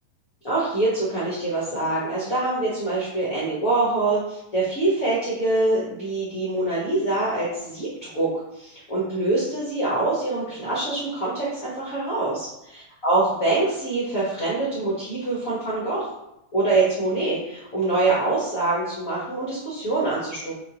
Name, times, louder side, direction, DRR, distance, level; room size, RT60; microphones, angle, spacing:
voice 1, 0.4-12.5 13.0-16.1 16.5-20.5, right 2 dB, 70° left, -8 dB, 0.8 m, -24 dB
6.9 x 2.5 x 2.9 m, 0.84 s
omnidirectional pair, 3.6 m